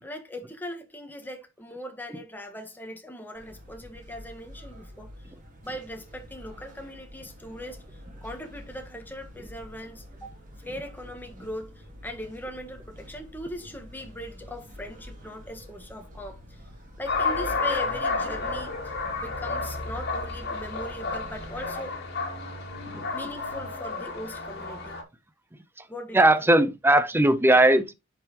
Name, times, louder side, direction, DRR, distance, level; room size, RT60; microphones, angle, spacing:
voice 1, 0.0-5.1 5.6-10.3 10.6-16.6 17.0-21.9 23.1-25.0 25.9-26.2, equal, 10° left, 1.6 m, -40 dB
sound 1, 3.3-21.8, equal, 40° right, 2.8 m, -47 dB
sound 2, 17.1-25.0, left 3 dB, 55° left, 2.6 m, -31 dB
voice 2, 26.1-27.9, right 1 dB, 10° right, 0.8 m, -19 dB
9.3 x 5.6 x 3.0 m
head